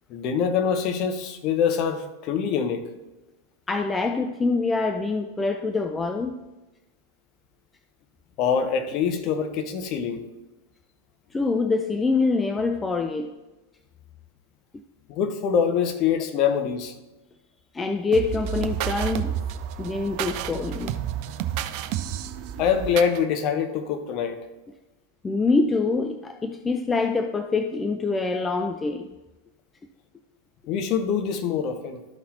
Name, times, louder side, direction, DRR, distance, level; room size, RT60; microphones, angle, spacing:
voice 1, 0.1-2.9 8.4-10.2 15.1-16.9 22.6-24.4 30.7-32.1, left 7 dB, 40° left, 7 dB, 0.8 m, -24 dB
voice 2, 3.7-6.4 11.3-13.3 17.7-19.3 19.8-21.0 25.2-29.1, left 3 dB, 15° left, 7 dB, 0.4 m, -25 dB
sound 1, 18.1-23.2, right 11 dB, 45° right, 0.4 m, -30 dB
12.5 x 5.6 x 2.8 m, 1.1 s
figure-of-eight pair, 90°, 0 cm